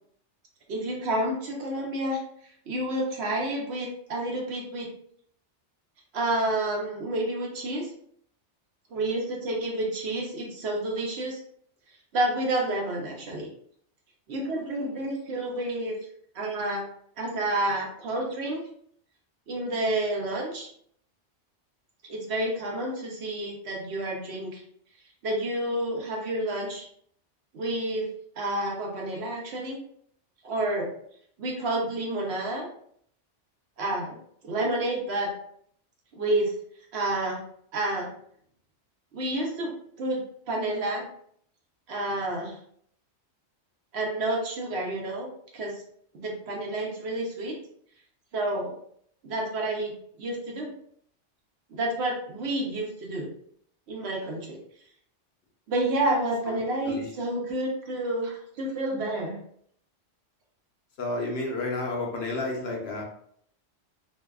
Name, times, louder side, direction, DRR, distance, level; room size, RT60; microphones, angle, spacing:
voice 1, 0.7-2.2 2.7-4.9 6.1-7.9 8.9-11.4 12.1-13.5 14.3-16.0 16.3-16.8 17.2-18.6 19.5-20.7 22.1-24.6 25.2-26.9 27.5-28.1 28.4-29.8 30.4-30.9 31.4-32.7 33.8-34.2 34.4-35.3 36.1-36.5 36.9-37.4 37.7-38.1 39.1-41.1 41.9-42.6 43.9-45.3 45.5-45.7 46.1-47.6 48.3-48.7 49.2-50.7 51.7-53.3 53.9-54.6 55.7-59.4, right 1 dB, 65° right, -1 dB, 0.9 m, -29 dB
voice 2, 56.5-57.0 61.0-63.0, left 2 dB, 65° left, -1 dB, 0.8 m, -31 dB
2.6 x 2.2 x 2.2 m, 0.65 s
omnidirectional pair, 1.2 m